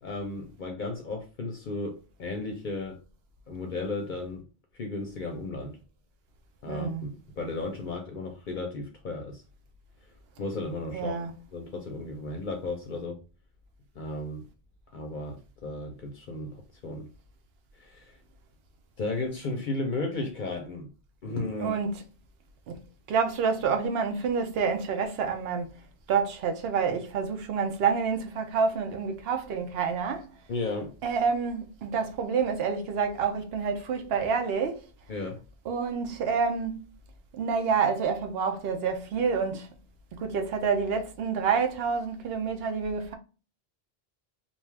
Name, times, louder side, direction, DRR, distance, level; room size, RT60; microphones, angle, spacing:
voice 1, 0.0-3.0 3.5-4.4 4.7-5.8 6.6-7.1 7.4-9.4 10.4-11.2 11.5-13.2 14.0-14.4 14.9-17.1 17.8-18.2 19.0-20.9 21.2-21.8 30.5-30.9 35.1-35.4, left 2 dB, 55° left, 0.6 m, -34 dB
voice 2, 6.7-7.1 10.9-11.3 21.6-22.0 22.7-22.8 23.1-25.8 26.1-30.3 31.0-34.8 35.7-36.9 37.3-39.7 40.1-43.2, right 5 dB, 75° right, 0.8 m, -28 dB
2.6 x 2.3 x 3.1 m
omnidirectional pair, 1.0 m